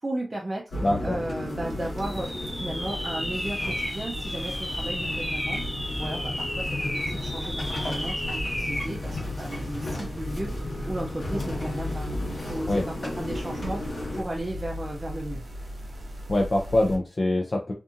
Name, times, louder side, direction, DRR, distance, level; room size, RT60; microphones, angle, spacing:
voice 1, 0.0-0.8 1.0-5.7 6.0-15.5, right 1 dB, 35° right, -1 dB, 0.4 m, -35 dB
sound 1, 0.7-14.2, left 1 dB, 85° left, 1.1 m, -34 dB
sound 2, 0.7-17.0, left 1 dB, 80° right, 0.6 m, -39 dB
voice 2, 0.8-1.2 12.7-12.8 16.3-17.7, left 1 dB, 50° left, 0 dB, 0.4 m, -24 dB
sound 3, 2.0-9.0, left 1 dB, 10° left, 0.7 m, -33 dB
2.6 x 2.5 x 2.4 m, 0.32 s
wide cardioid pair, 70°, 0 cm